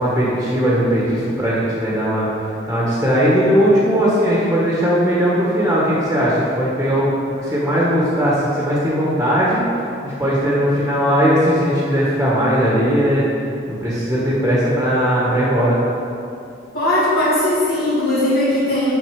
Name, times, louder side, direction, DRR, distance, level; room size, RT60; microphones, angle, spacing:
voice 1, 0.0-2.3 2.7-13.2 13.7-15.8, equal, 10° right, -7 dB, 1.5 m, -18 dB
voice 2, 16.7-18.9, left 1 dB, 50° left, -11 dB, 2.3 m, -18 dB
7.9 x 7.0 x 4.9 m, 2.5 s
head